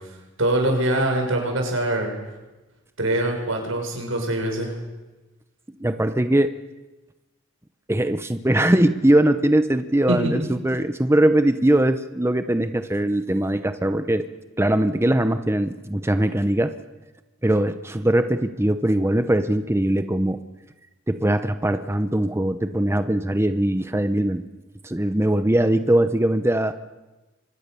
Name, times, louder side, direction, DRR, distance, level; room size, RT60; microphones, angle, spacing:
voice 1, 0.4-2.1 3.0-4.7 10.1-10.3, right 1 dB, 90° right, 2 dB, 7.1 m, -23 dB
voice 2, 5.8-6.5 7.9-14.3 14.6-16.7 17.4-20.4 21.1-24.4 24.8-26.7, right 1 dB, 15° right, 10 dB, 0.8 m, -21 dB
30.0 x 24.5 x 7.0 m, 1.1 s
head